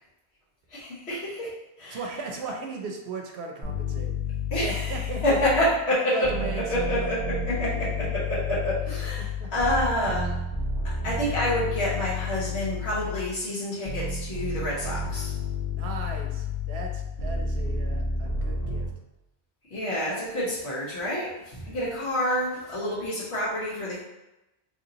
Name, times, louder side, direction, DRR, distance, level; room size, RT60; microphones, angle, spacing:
voice 1, 0.7-1.5 1.8-2.0 4.5-6.3 6.7-10.3 10.8-15.3 19.7-24.0, left 1 dB, 85° left, -8 dB, 1.3 m, -28 dB
voice 2, 1.9-4.1 4.6-5.2 6.0-7.1 8.0-8.1 9.2-9.5 15.7-18.9, right 4 dB, 80° right, 2 dB, 0.8 m, -37 dB
sound 1, 3.6-5.8 6.2-13.4 13.9-18.9, left 3 dB, 55° left, 1.3 m, -31 dB
3.2 x 2.7 x 3.9 m, 0.97 s
omnidirectional pair, 1.1 m